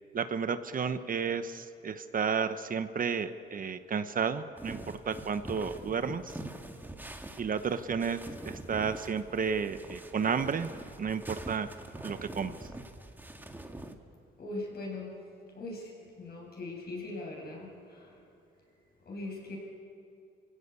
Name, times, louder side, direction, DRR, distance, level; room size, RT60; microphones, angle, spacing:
voice 1, 0.1-4.8 5.1-6.3 7.4-8.2 8.4-10.7 11.0-11.7 12.0-12.5, right 6 dB, 45° right, 11 dB, 1.0 m, -32 dB
sound 1, 4.6-13.9, right 1 dB, 10° right, 1.9 m, -44 dB
voice 2, 14.4-15.2 15.5-15.9 16.2-18.2 19.0-19.6, left 2 dB, 55° left, -1 dB, 7.8 m, -40 dB
28.0 x 16.5 x 8.4 m, 2.6 s
cardioid pair, 90°, 20 cm